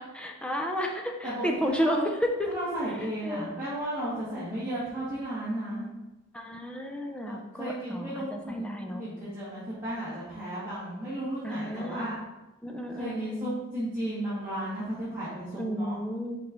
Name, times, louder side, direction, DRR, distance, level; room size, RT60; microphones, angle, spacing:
voice 1, 0.0-2.5 3.2-3.5 4.3-4.4 6.3-9.0 11.4-12.1 12.6-13.5 15.6-16.4, equal, 5° left, 2 dB, 0.5 m, -32 dB
voice 2, 1.2-2.0 2.5-5.9 7.2-12.1 12.9-16.0, right 1 dB, 10° right, -14 dB, 2.1 m, -34 dB
6.3 x 5.2 x 3.1 m, 1.0 s
head